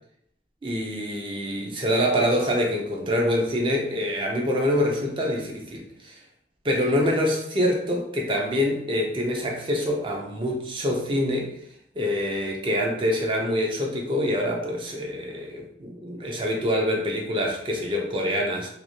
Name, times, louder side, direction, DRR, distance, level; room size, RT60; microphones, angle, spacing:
voice 1, 0.6-6.2 6.6-11.6 12.0-18.7, equal, 30° right, 1 dB, 0.5 m, -25 dB
2.5 x 2.4 x 2.9 m, 0.72 s
head